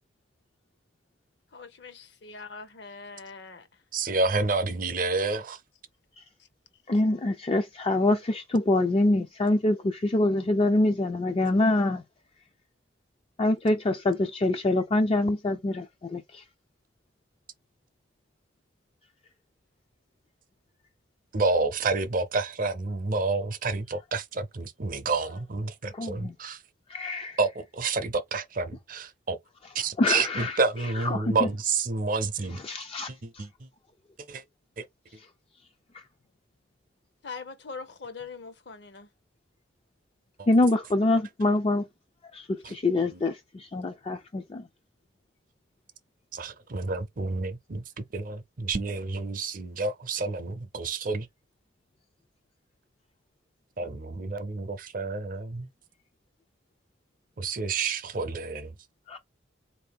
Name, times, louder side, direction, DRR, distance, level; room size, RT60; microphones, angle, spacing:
voice 1, 1.5-3.7 37.2-39.1 42.9-43.1, left 4 dB, 60° left, 0.8 m, -42 dB
voice 2, 3.9-5.6 21.3-26.6 27.4-29.4 29.7-32.6 33.4-33.5 34.3-34.4 42.6-42.7 46.3-47.8 48.1-51.3 53.8-55.7 57.4-58.7, right 3 dB, 45° right, 0.5 m, -29 dB
voice 3, 6.9-12.0 13.4-16.2 25.9-26.3 26.9-27.4 30.0-30.6 31.0-31.5 32.5-33.1 33.4-33.5 40.5-41.8 42.3-42.5 42.7-44.6 59.1-59.2, left 2 dB, 30° left, 0.4 m, -25 dB
4.1 x 2.7 x 3.4 m
head